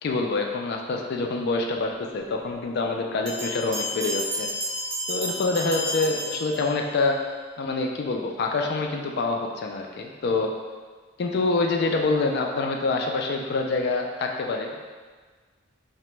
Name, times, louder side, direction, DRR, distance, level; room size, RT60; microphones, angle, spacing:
voice 1, 0.0-4.5 5.1-7.2 7.6-10.5 11.2-14.9, left 3 dB, 55° left, 2 dB, 0.3 m, -26 dB
Bell, 3.3-7.0, equal, 75° right, 0.6 m, -31 dB
2.9 x 2.1 x 3.1 m, 1.5 s
head